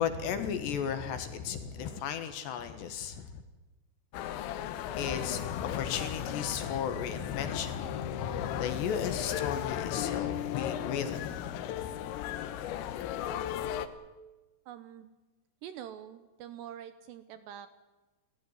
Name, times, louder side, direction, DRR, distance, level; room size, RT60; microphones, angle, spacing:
voice 1, 0.0-3.3 5.0-11.5, left 7 dB, 65° left, 9 dB, 3.4 m, -34 dB
sound 1, 4.1-13.9, left 11 dB, 85° left, 3.7 m, -36 dB
voice 2, 14.7-15.1 15.6-17.7, right 10 dB, 75° right, 11 dB, 2.7 m, -45 dB
30.0 x 15.0 x 9.9 m, 1.2 s
omnidirectional pair, 5.7 m